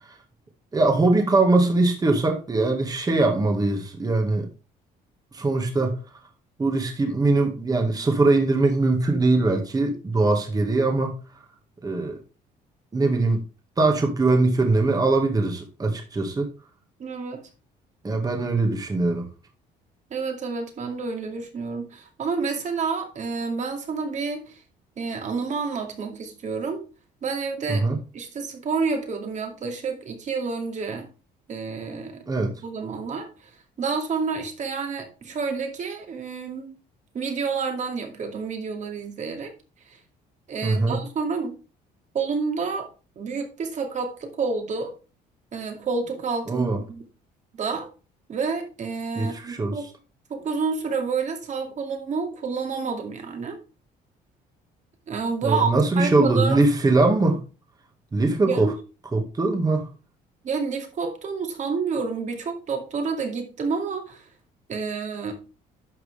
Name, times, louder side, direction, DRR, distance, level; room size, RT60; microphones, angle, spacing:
voice 1, 0.7-4.5 5.3-5.9 6.6-11.1 11.8-12.2 12.9-13.4 13.8-16.5 18.0-19.3 27.7-28.0 32.3-32.5 40.6-41.0 46.5-46.8 49.2-49.8 55.4-57.4 58.1-58.7 59.1-59.9, right 2 dB, 20° right, 3 dB, 1.8 m, -21 dB
voice 2, 17.0-17.5 20.1-24.6 25.0-26.8 27.2-27.8 28.1-31.1 31.5-32.3 32.6-36.7 37.1-39.5 39.9-40.0 40.5-41.6 42.1-42.9 43.2-44.9 45.5-47.0 47.5-47.9 48.3-49.8 50.3-53.6 55.1-56.6 58.5-58.8 60.4-64.3 64.7-65.3, right 5 dB, 45° right, 5 dB, 2.3 m, -29 dB
11.0 x 6.1 x 3.4 m, 0.32 s
cardioid pair, 110°, 17 cm